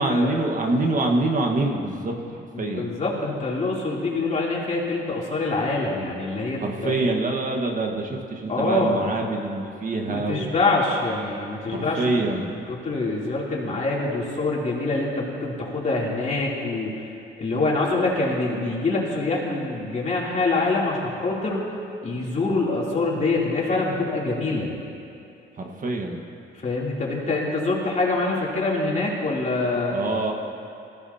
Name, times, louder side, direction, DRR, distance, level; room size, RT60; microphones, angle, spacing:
voice 1, 0.0-2.8 6.6-10.5 11.7-12.5 25.6-26.2 29.9-30.3, right 2 dB, 40° right, 2 dB, 1.4 m, -25 dB
voice 2, 2.5-6.9 8.5-9.1 10.1-16.9 17.4-21.7 22.0-24.7 26.6-30.0, left 3 dB, 35° left, -4 dB, 3.0 m, -25 dB
19.0 x 15.0 x 2.8 m, 2.6 s
cardioid pair, 90°, 20 cm